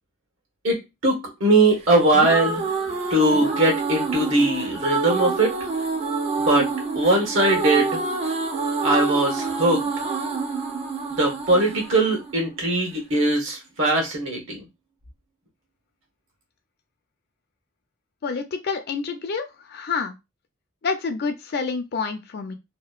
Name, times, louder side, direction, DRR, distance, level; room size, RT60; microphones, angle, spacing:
voice 1, 0.6-2.6 3.1-5.6 6.4-6.7 6.9-8.0 8.8-9.9 11.1-14.6, right 2 dB, 75° right, 2 dB, 1.1 m, -20 dB
sound 1, 1.9-12.9, right 4 dB, 30° right, 0.4 m, -27 dB
voice 2, 18.2-20.1 20.8-22.5, left 5 dB, 55° left, 7 dB, 0.4 m, -28 dB
2.8 x 2.1 x 2.4 m, 0.23 s
head